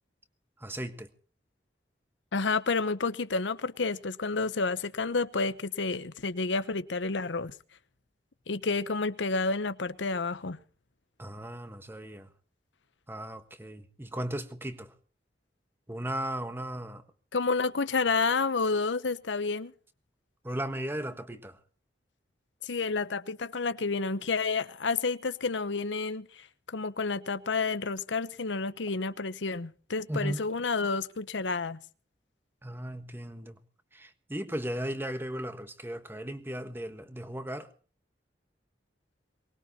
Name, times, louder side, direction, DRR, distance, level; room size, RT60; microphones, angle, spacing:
voice 1, 0.6-1.1 11.2-12.3 13.1-14.9 15.9-17.0 20.4-21.6 30.1-30.4 32.6-33.6 33.9-37.7, right 1 dB, 10° right, 1.4 m, -36 dB
voice 2, 2.3-7.5 8.5-10.6 17.3-19.7 22.6-31.8, left 4 dB, 85° left, 0.9 m, -30 dB
23.5 x 20.0 x 2.9 m
head